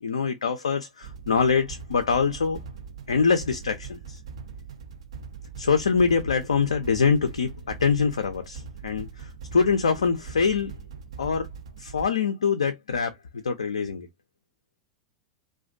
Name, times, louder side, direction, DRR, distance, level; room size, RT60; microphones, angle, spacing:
voice 1, 0.0-2.6 3.1-4.2 5.6-10.7 11.2-11.5 11.8-13.1 13.4-14.1, left 5 dB, 75° left, 0.3 m, -24 dB
sound 1, 1.0-12.1, right 5 dB, 65° right, 0.4 m, -41 dB
2.3 x 2.2 x 2.5 m
figure-of-eight pair, 90°, 3 cm